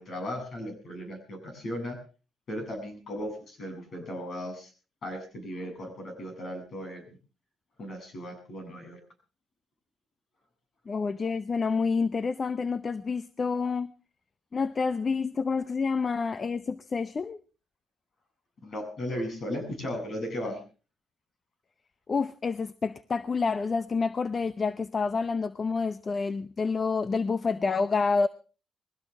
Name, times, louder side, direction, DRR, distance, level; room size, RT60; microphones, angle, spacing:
voice 1, 0.0-2.0 2.5-4.7 5.0-7.0 7.8-9.0 18.6-20.6, equal, 55° left, 7.6 m, -36 dB
voice 2, 10.9-13.9 14.5-17.4 22.1-28.3, left 4 dB, 35° left, 0.7 m, -28 dB
21.5 x 16.5 x 3.5 m
cardioid pair, 90°, 0 cm